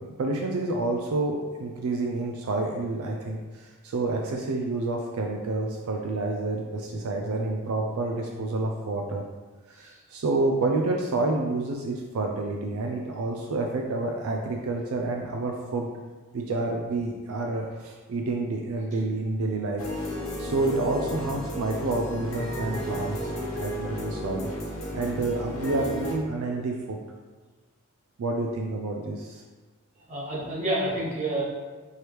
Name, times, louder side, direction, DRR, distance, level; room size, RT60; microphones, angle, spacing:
voice 1, 0.0-9.2 9.7-15.9 16.3-19.8 20.4-23.2 23.6-24.5 24.9-27.0 28.2-29.4, right 2 dB, 80° right, 1 dB, 0.4 m, -29 dB
sound 1, 19.8-26.1, equal, 65° left, 1.1 m, -33 dB
voice 2, 30.1-31.4, right 1 dB, 35° right, -8 dB, 1.4 m, -28 dB
4.5 x 3.3 x 3.0 m, 1.4 s
head